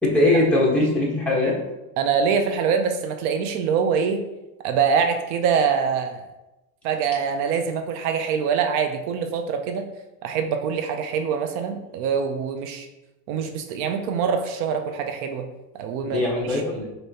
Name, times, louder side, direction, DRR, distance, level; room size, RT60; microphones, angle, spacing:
voice 1, 0.0-1.5 16.0-16.9, left 2 dB, 5° left, -6 dB, 1.3 m, -21 dB
voice 2, 2.0-4.2 4.6-6.3 6.8-9.8 10.2-12.9 13.3-15.5 15.8-16.2 16.5-16.6, right 6 dB, 70° right, 6 dB, 0.7 m, -24 dB
6.4 x 2.9 x 2.9 m, 0.98 s
supercardioid pair, 130°, 46 cm